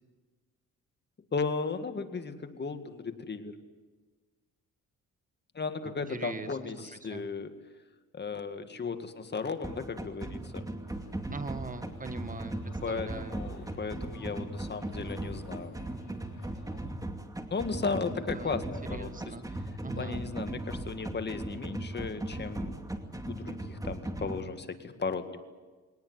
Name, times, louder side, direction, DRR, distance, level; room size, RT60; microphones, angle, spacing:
voice 1, 1.3-3.6 5.6-7.5 8.1-10.7 12.8-15.8 17.5-19.2 20.0-22.8 23.3-25.4, left 4 dB, 35° left, 8 dB, 2.0 m, -35 dB
voice 2, 6.1-7.3 11.3-13.4 18.1-19.5 19.8-20.3, right 4 dB, 25° right, 11 dB, 1.5 m, -42 dB
sound 1, 9.6-24.4, right 1 dB, 10° right, 2.4 m, -38 dB
sound 2, 10.8-16.9, left 6 dB, 75° left, 7.2 m, -58 dB
21.5 x 19.0 x 9.6 m, 1.3 s
cardioid pair, 90°, 30 cm